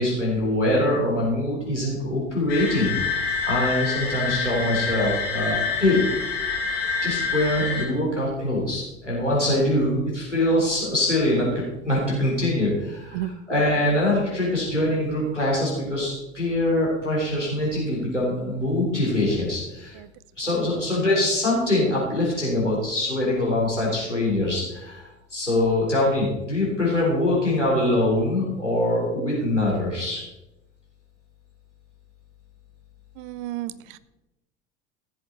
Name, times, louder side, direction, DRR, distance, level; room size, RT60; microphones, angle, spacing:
voice 1, 0.0-2.9 3.4-6.0 7.0-19.9 20.4-30.2, left 1 dB, 90° left, -5 dB, 3.6 m, -23 dB
sound 1, 2.5-7.8, left 5 dB, 60° left, 2.6 m, -27 dB
voice 2, 33.2-34.0, right 14 dB, 50° right, 17 dB, 0.6 m, -32 dB
14.0 x 7.8 x 4.4 m, 0.97 s
figure-of-eight pair, 70°, 35 cm